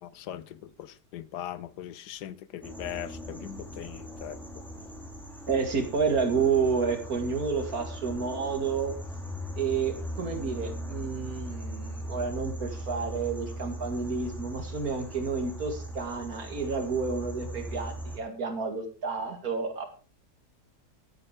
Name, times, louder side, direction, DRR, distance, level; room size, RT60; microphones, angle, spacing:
voice 1, 0.0-4.4, left 11 dB, 85° left, 1.4 m, -40 dB
sound 1, 2.6-18.2, equal, ahead, 2.4 m, -39 dB
voice 2, 5.5-8.9 9.6-19.9, right 5 dB, 65° right, 2.6 m, -30 dB
12.5 x 9.1 x 4.9 m
omnidirectional pair, 1.7 m